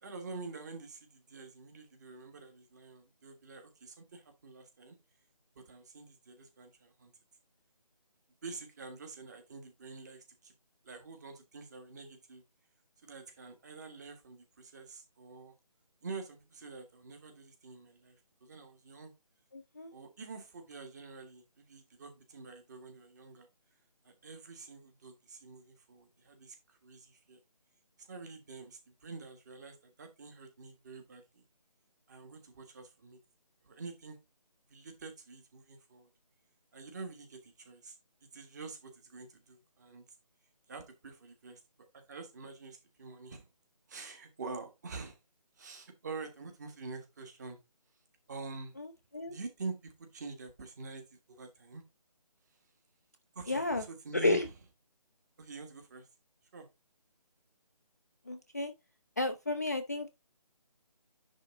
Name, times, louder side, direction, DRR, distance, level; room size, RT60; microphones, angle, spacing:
voice 1, 0.0-5.0 5.5-7.1 8.4-10.5 10.8-12.4 13.0-15.5 16.0-19.1 19.9-23.5 24.0-27.4 28.0-31.4 32.1-33.2 33.6-34.2 34.7-36.1 36.7-38.0 38.2-40.0 40.7-41.6 41.9-43.5 43.9-45.2 45.5-47.6 48.3-48.7 49.2-51.8 52.5-52.6 53.3-54.5 55.4-56.1 56.5-56.7, right 4 dB, 25° right, 1.5 m, -47 dB
voice 2, 19.5-19.9 48.8-48.9 49.1-49.3 53.5-53.8 54.1-54.5 58.3-58.7 59.2-60.1, left 2 dB, 25° left, 0.4 m, -31 dB
10.0 x 3.6 x 3.9 m
figure-of-eight pair, 160°, 21 cm